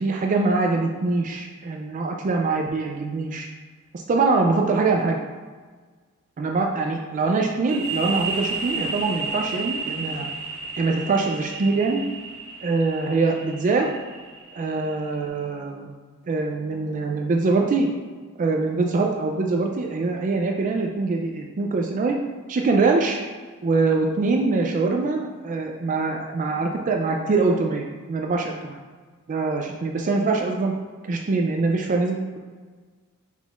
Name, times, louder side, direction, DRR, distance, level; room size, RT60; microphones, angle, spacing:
voice 1, 0.0-3.5 3.9-5.2 6.4-10.3 10.8-12.0 12.6-13.9 14.6-15.9 16.3-17.9 18.4-22.2 22.5-23.2 23.6-28.8 29.3-30.7 31.1-32.4, right 3 dB, 35° right, 2 dB, 0.3 m, -23 dB
sound 1, 7.7-15.2, right 4 dB, 65° right, 0.8 m, -33 dB
5.5 x 4.0 x 2.4 m, 1.5 s
head